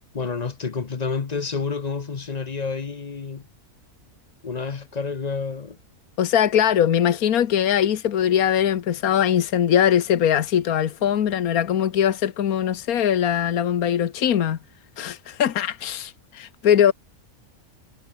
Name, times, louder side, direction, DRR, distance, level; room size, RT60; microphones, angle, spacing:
voice 1, 0.1-3.5 4.4-5.8, left 5 dB, 35° left, 0.8 m, -29 dB
voice 2, 6.2-14.6 15.0-16.9, left 9 dB, 85° left, 1.5 m, -21 dB
omnidirectional pair, 1.5 m